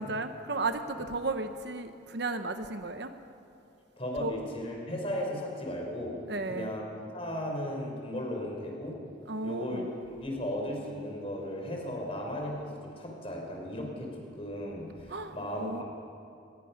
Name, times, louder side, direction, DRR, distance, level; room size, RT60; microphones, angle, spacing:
voice 1, 0.0-3.1 4.2-4.3 6.3-6.7 9.3-9.9 15.1-15.8, right 3 dB, 55° right, 8 dB, 1.0 m, -34 dB
voice 2, 4.0-8.9 9.4-9.8 10.1-15.8, equal, 30° left, 0 dB, 4.3 m, -36 dB
23.5 x 20.0 x 5.9 m, 2.7 s
head